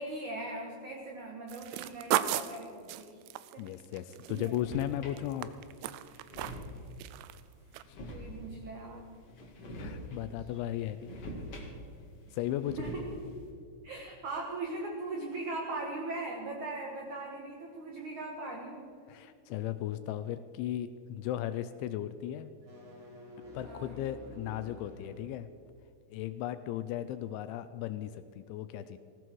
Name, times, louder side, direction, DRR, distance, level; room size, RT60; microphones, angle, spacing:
voice 1, 0.0-3.2 3.5-3.7 4.3-4.5 8.1-9.1 12.6-13.2 13.8-18.9 23.6-24.0, right 2 dB, 70° right, 0 dB, 1.8 m, -39 dB
sound 1, 1.5-4.8 5.2-6.7 7.0-7.4 7.7-7.8, right 14 dB, 85° right, 3.2 m, -35 dB
voice 2, 3.6-5.5 9.8-11.3 12.3-12.8 19.1-22.5 23.5-25.5 26.1-29.0, left 12 dB, 85° left, 12 dB, 2.7 m, -36 dB
sound 2, 4.3-5.2 5.7-5.8 6.1-7.0 7.7-8.7 9.3-10.3 10.6-12.0 12.3-13.4, equal, 50° left, 1.7 m, -44 dB
sound 3, 22.5-25.3, left 1 dB, 30° right, 4.2 m, -49 dB
19.0 x 15.5 x 4.6 m, 2.3 s
omnidirectional pair, 5.8 m